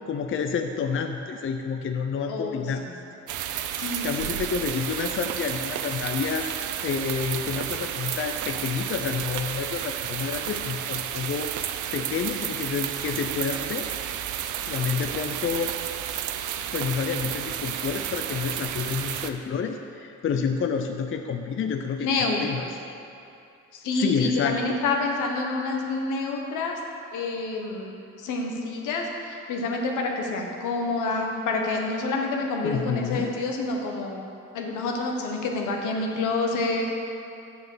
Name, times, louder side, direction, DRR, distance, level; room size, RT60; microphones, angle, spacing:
voice 1, 0.1-2.8 4.0-6.5 6.8-11.5 11.9-13.9 14.7-15.7 16.7-22.6 23.9-24.8 32.6-33.4, left 6 dB, 45° left, 5 dB, 0.6 m, -29 dB
voice 2, 2.3-2.9 3.8-4.4 22.0-22.7 23.8-26.8 27.1-27.9 28.2-34.2 34.5-36.8, left 3 dB, 85° left, 1 dB, 1.3 m, -28 dB
sound 1, 3.3-19.3, right 10 dB, 75° right, 0.6 m, -31 dB
7.0 x 6.7 x 6.7 m, 2.6 s
cardioid pair, 90°, 30 cm